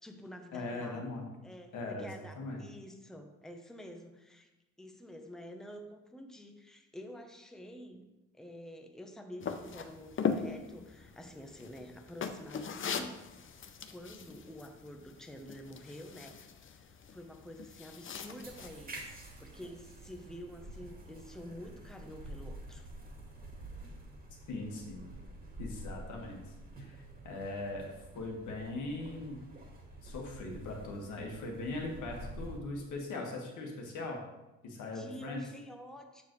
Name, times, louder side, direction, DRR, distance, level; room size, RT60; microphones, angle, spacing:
voice 1, 0.0-1.1 1.4-4.5 4.8-8.1 8.3-13.2 13.9-22.9 34.6-36.2, equal, ahead, 4 dB, 0.9 m, -49 dB
voice 2, 0.5-1.3 1.7-2.6 24.5-25.1 25.6-27.9 28.1-29.4 30.0-34.2 34.6-35.4, left 2 dB, 75° left, 0 dB, 1.7 m, -40 dB
sound 1, 9.4-18.7, left 6 dB, 40° left, 0.6 m, -40 dB
sound 2, 18.4-32.6, right 1 dB, 30° right, 2.0 m, -48 dB
7.1 x 6.7 x 3.1 m, 1.0 s
cardioid pair, 90°, 30 cm